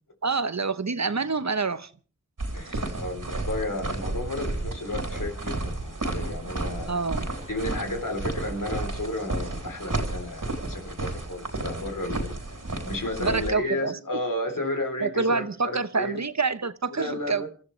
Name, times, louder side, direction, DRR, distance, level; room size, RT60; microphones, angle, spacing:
voice 1, 0.2-1.9 6.9-7.3 13.2-14.0 15.0-17.5, right 4 dB, 60° right, 1.0 m, -27 dB
sound 1, 2.4-13.5, right 2 dB, 85° right, 3.5 m, -32 dB
voice 2, 2.5-7.0 7.5-12.6 12.8-16.2 16.9-17.5, left 1 dB, 80° left, 3.5 m, -33 dB
sound 2, 5.1-13.2, left 1 dB, 20° left, 2.6 m, -48 dB
28.5 x 14.0 x 3.2 m
wide cardioid pair, 40°, 31 cm